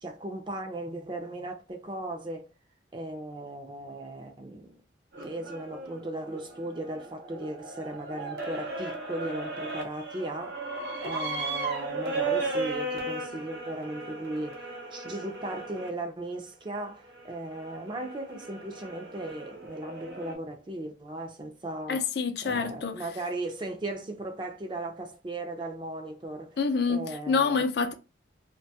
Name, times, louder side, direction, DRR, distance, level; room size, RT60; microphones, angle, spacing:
voice 1, 0.0-2.5 2.9-4.8 5.2-10.6 11.0-14.6 14.9-22.1 22.4-26.6 26.9-27.6, right 2 dB, 25° right, 0.4 m, -37 dB
sound 1, 5.1-15.9 16.7-20.3, right 2 dB, 60° right, 0.8 m, -36 dB
voice 2, 21.9-23.0 26.6-27.9, left 5 dB, 60° left, 0.4 m, -27 dB
2.6 x 2.2 x 2.7 m
head